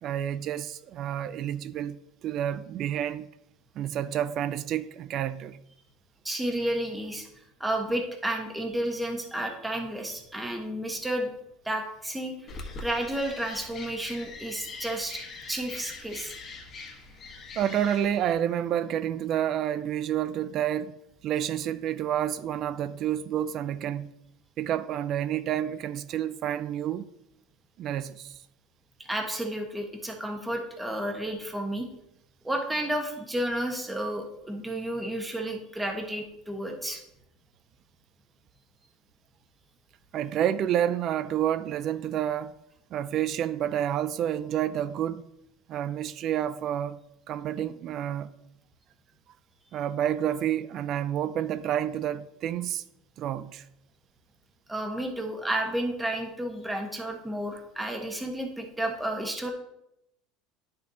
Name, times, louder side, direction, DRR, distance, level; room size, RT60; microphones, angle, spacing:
voice 1, 0.0-2.0 2.2-3.3 3.8-5.6 17.6-20.9 21.2-24.1 24.6-27.0 27.8-28.4 40.1-42.5 42.9-45.2 45.7-47.0 47.3-48.3 49.7-52.8 53.2-53.6, right 10 dB, 45° right, 0.4 m, -29 dB
voice 2, 6.2-7.3 7.6-11.3 11.6-12.5 12.8-15.2 15.5-16.3 29.0-31.9 32.4-37.0 54.7-59.5, right 1 dB, 5° right, 1.2 m, -31 dB
sound 1, 12.5-18.3, left 3 dB, 35° left, 1.3 m, -42 dB
9.9 x 6.6 x 2.8 m
supercardioid pair, 125°, 0 cm